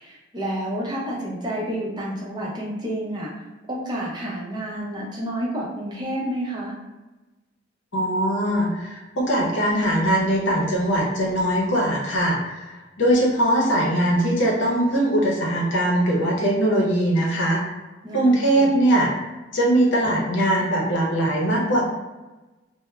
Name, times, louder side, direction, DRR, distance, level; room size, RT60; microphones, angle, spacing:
voice 1, 0.0-3.3 3.7-6.8 18.0-18.8, right 1 dB, 25° right, -4 dB, 0.5 m, -30 dB
voice 2, 7.9-12.4 13.0-17.6 18.1-19.1 19.5-21.8, right 1 dB, 75° left, -2 dB, 0.7 m, -21 dB
2.2 x 2.0 x 3.1 m, 1.1 s
head